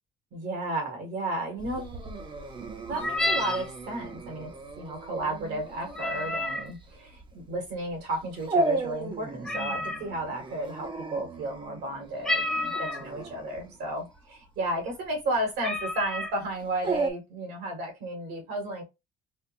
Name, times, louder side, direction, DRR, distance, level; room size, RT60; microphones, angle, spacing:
voice 1, 0.3-1.9 2.9-18.8, right 1 dB, 80° right, 2.0 m, -33 dB
Dog, 1.6-17.1, right 2 dB, 30° right, 0.8 m, -35 dB
sound 1, 2.9-3.7 5.9-6.7 9.4-10.1 12.2-13.1 13.9-14.0 14.3-14.6 15.2-15.3 15.6-16.4, left 1 dB, 5° left, 0.7 m, -30 dB
4.3 x 2.5 x 2.6 m
cardioid pair, 110°, 17 cm